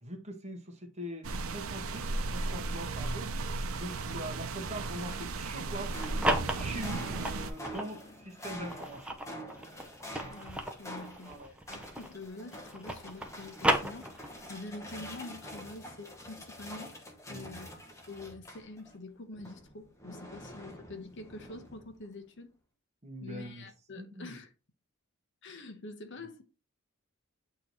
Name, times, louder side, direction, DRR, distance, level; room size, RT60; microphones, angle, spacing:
voice 1, 0.0-3.3 3.7-6.0 6.6-9.2 11.2-11.5 17.3-17.6 23.0-23.6 24.0-24.4, equal, 30° right, 1.4 m, -42 dB
sound 1, 1.2-7.5, right 3 dB, 75° right, 0.7 m, -35 dB
sound 2, 5.6-19.0 19.3-22.1, equal, 15° left, 1.1 m, -47 dB
sound 3, 5.9-7.9 8.5-12.3 12.5-14.5, right 1 dB, 5° right, 0.7 m, -33 dB
voice 2, 10.2-17.7 18.1-22.5 23.2-24.5 25.4-26.4, left 2 dB, 55° left, 1.0 m, -46 dB
8.8 x 3.1 x 4.1 m
head